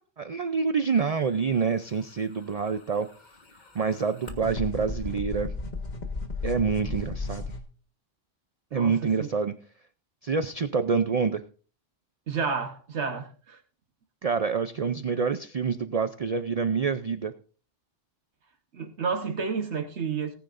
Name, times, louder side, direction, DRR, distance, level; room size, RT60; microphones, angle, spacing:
voice 1, 0.2-3.1 3.7-5.5 6.4-7.5 8.7-9.5 10.2-11.4 14.2-17.3, right 5 dB, 45° right, 0.5 m, -27 dB
sound 1, 2.4-7.6, left 3 dB, 40° left, 1.5 m, -35 dB
voice 2, 8.7-9.3 12.3-13.6 18.7-20.3, right 5 dB, 75° right, 1.4 m, -31 dB
19.0 x 9.9 x 2.6 m
omnidirectional pair, 1.2 m